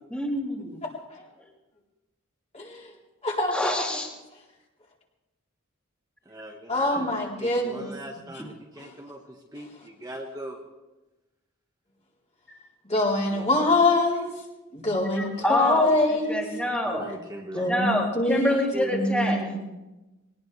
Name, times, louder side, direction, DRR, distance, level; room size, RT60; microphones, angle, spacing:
voice 1, 0.1-0.8 3.5-4.1 8.4-8.5 15.2-15.9 16.3-17.0 17.6-19.5, equal, 5° left, -2 dB, 3.0 m, -27 dB
voice 2, 2.5-2.9 3.2-3.7 6.7-7.9 8.8-8.9 12.9-14.3 14.7-16.4 16.7-16.8 17.5-18.6 18.9-19.6, left 2 dB, 30° left, -3 dB, 3.9 m, -24 dB
voice 3, 6.2-10.6 13.1-13.5 15.3-15.5 16.8-17.7 18.5-19.0, right 1 dB, 15° right, -1 dB, 1.5 m, -40 dB
21.5 x 19.0 x 3.4 m, 1.1 s
head